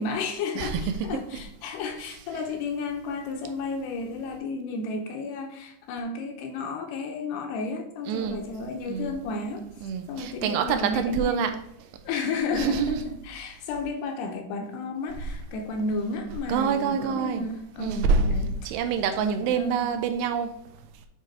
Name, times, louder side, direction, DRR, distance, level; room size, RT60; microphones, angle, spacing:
voice 1, 0.0-9.7 10.1-11.5 12.1-18.5 19.2-19.9, left 3 dB, 80° left, 3 dB, 2.6 m, -32 dB
voice 2, 0.6-1.1 8.1-8.4 8.9-9.1 9.8-11.5 12.5-13.0 16.5-17.5 17.8-18.3 18.6-20.6, right 6 dB, 85° right, 7 dB, 2.7 m, -26 dB
9.0 x 3.5 x 4.5 m, 0.76 s
omnidirectional pair, 5.0 m